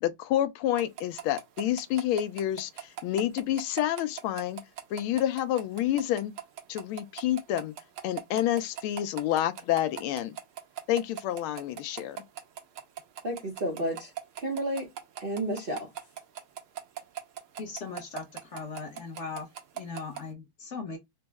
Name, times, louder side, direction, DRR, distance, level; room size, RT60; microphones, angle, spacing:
voice 1, 0.0-4.6 4.9-6.3 6.7-7.7 8.0-10.3 10.9-12.2, left 12 dB, 90° left, 1.4 m, -29 dB
sound 1, 0.8-20.2, right 11 dB, 85° right, 1.7 m, -39 dB
voice 2, 13.2-14.1 14.4-14.9 15.2-15.9, right 1 dB, 70° right, 0.5 m, -31 dB
voice 3, 17.6-19.5 19.7-21.0, left 4 dB, 55° left, 0.8 m, -39 dB
4.2 x 2.0 x 3.3 m
omnidirectional pair, 2.2 m